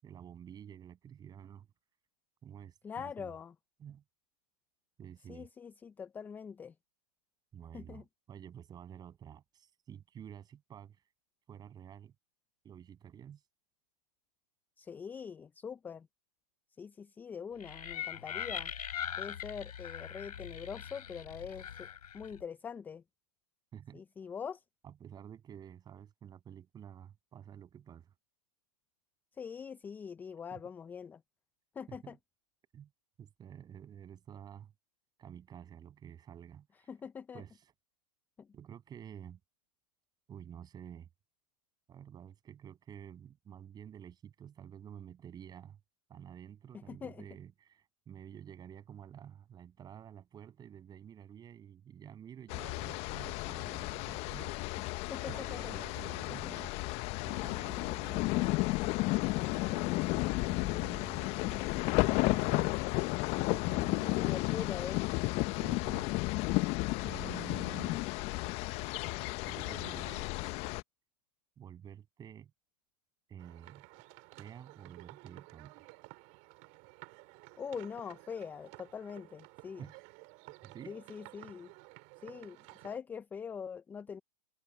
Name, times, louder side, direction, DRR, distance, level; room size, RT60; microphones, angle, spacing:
voice 1, 0.0-1.7 2.4-3.3 3.8-4.0 5.0-5.5 7.5-11.0 11.5-12.1 12.6-13.4 23.7-24.0 24.8-28.1 30.5-30.6 31.9-32.2 32.7-32.9 33.2-34.7 35.2-36.9 37.3-37.7 38.5-39.4 40.3-41.1 41.9-45.8 46.1-56.8 57.2-59.0 59.3-61.7 62.0-62.7 63.5-64.2 65.6-66.1 67.0-68.1 69.4-70.5 71.6-72.5 73.3-73.9 74.4-75.8 79.8-80.0 80.6-81.0, right 9 dB, 20° right, 7.0 m, -50 dB
voice 2, 2.8-3.5 5.3-6.7 7.7-8.0 14.8-16.1 16.8-18.7 19.2-21.9 22.1-23.0 23.9-24.6 29.3-31.2 31.8-32.2 36.9-37.4 38.4-38.5 46.7-47.2 54.8-54.9 55.1-55.7 56.3-56.6 57.8-58.3 64.1-65.1 67.2-67.3 77.6-79.9 80.9-81.7 82.2-82.6 82.8-84.2, left 6 dB, 10° left, 0.4 m, -43 dB
sound 1, 17.6-22.4, left 9 dB, 75° left, 3.1 m, -41 dB
sound 2, 52.5-70.8, left 23 dB, 30° left, 0.9 m, -33 dB
sound 3, 73.4-83.0, right 31 dB, 40° right, 5.1 m, -54 dB
hypercardioid pair, 125°, 20 cm